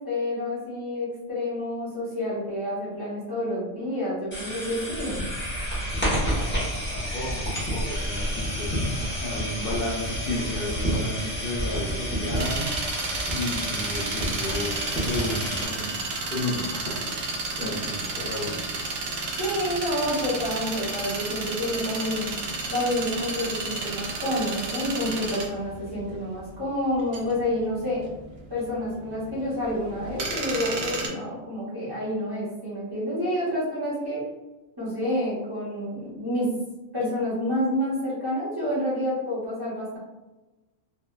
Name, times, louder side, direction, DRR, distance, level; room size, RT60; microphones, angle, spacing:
voice 1, 0.0-5.3 17.6-17.7 19.4-22.3 22.7-28.1 28.5-34.3 34.8-36.5 36.9-40.0, left 1 dB, 20° right, -10 dB, 1.0 m, -29 dB
sound 1, 4.3-15.6, equal, 10° left, 0.7 m, -29 dB
voice 2, 6.3-8.9 9.2-12.7 13.3-14.7 15.0-16.0 16.3-18.6, left 2 dB, 60° left, -6 dB, 0.6 m, -33 dB
sound 2, 12.4-31.1, right 3 dB, 65° right, 0.7 m, -32 dB
2.7 x 2.3 x 2.2 m, 1.1 s
omnidirectional pair, 1.3 m